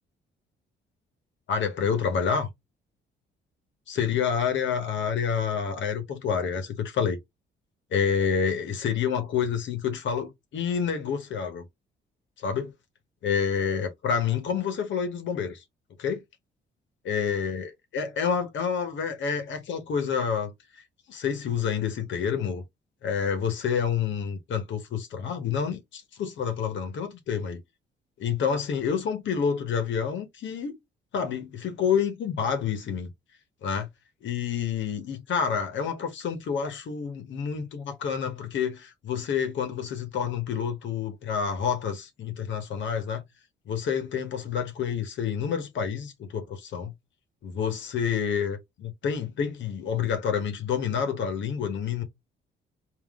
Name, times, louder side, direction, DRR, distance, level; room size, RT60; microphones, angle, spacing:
voice 1, 1.5-2.5 3.9-7.2 7.9-11.7 12.4-12.7 13.2-15.6 16.0-16.2 17.0-20.8 21.1-22.6 23.0-27.6 28.2-30.7 31.1-33.1 33.6-33.9 34.2-43.2 43.7-46.9 47.4-52.0, left 7 dB, 70° left, 1.2 m, -28 dB
3.8 x 2.8 x 3.6 m
cardioid pair, 90°, 20 cm